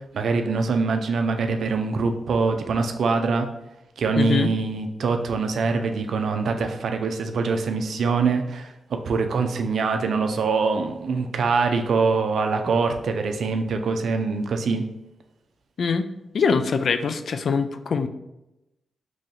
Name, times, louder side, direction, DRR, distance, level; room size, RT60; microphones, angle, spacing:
voice 1, 0.1-3.5 4.0-8.7 9.0-14.9, right 4 dB, 75° right, 6 dB, 0.4 m, -24 dB
voice 2, 4.2-4.5 15.8-16.1 16.3-18.1, left 5 dB, 65° left, 9 dB, 0.3 m, -23 dB
3.1 x 2.7 x 3.8 m, 0.91 s
cardioid pair, 70°, 0 cm